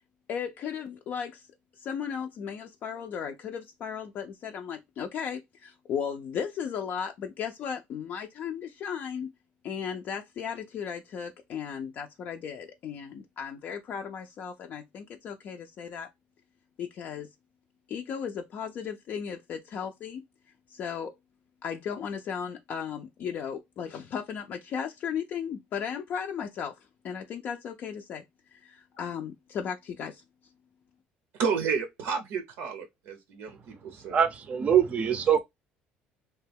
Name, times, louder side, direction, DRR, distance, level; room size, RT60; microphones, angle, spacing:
voice 1, 0.3-1.5 1.8-9.3 9.6-16.1 16.8-17.3 17.9-20.2 20.7-21.1 21.6-26.8 27.0-28.2 28.5-30.2, left 7 dB, 50° left, 0.4 m, -35 dB
voice 2, 31.3-34.2, right 6 dB, 80° right, 0.6 m, -31 dB
voice 3, 34.1-35.4, right 8 dB, 35° right, 0.5 m, -23 dB
2.8 x 2.2 x 3.3 m
cardioid pair, 120°, 4 cm